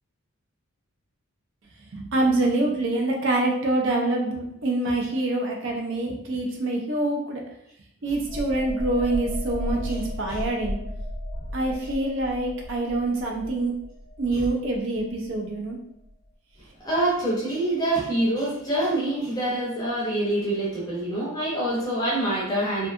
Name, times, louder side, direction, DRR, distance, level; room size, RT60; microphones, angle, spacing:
voice 1, 1.9-7.4 8.0-10.8 11.5-13.7 14.2-15.8, right 2 dB, 55° right, 0 dB, 0.5 m, -25 dB
sound 1, 8.2-15.7 16.0-16.2, equal, 80° left, 0.7 m, -35 dB
voice 2, 16.8-22.9, right 1 dB, 15° left, -6 dB, 0.6 m, -26 dB
2.7 x 2.3 x 2.3 m, 0.74 s
head